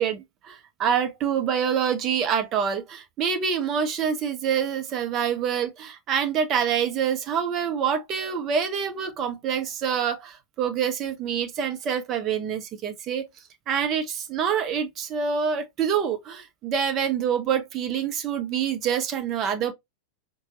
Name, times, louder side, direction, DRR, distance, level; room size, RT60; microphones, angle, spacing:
voice 1, 0.0-13.2 13.7-19.7, right 7 dB, 35° right, 0.8 m, -26 dB
4.4 x 2.3 x 2.8 m
figure-of-eight pair, 90°, 0 cm